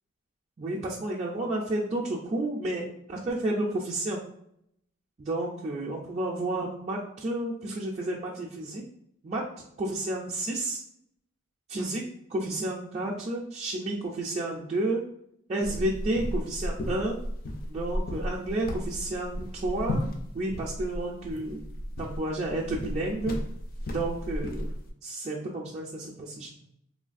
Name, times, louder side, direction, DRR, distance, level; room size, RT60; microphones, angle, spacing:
voice 1, 0.6-4.2 5.2-8.8 9.2-9.4 9.8-10.8 11.7-12.0 12.3-15.0 15.5-17.2 17.7-20.1 20.3-21.7 22.0-23.4 23.9-24.7 25.0-26.5, right 2 dB, 30° right, -5 dB, 0.4 m, -31 dB
sound 1, 15.6-24.9, equal, 45° left, 0.4 m, -34 dB
3.2 x 2.3 x 2.4 m, 0.71 s
head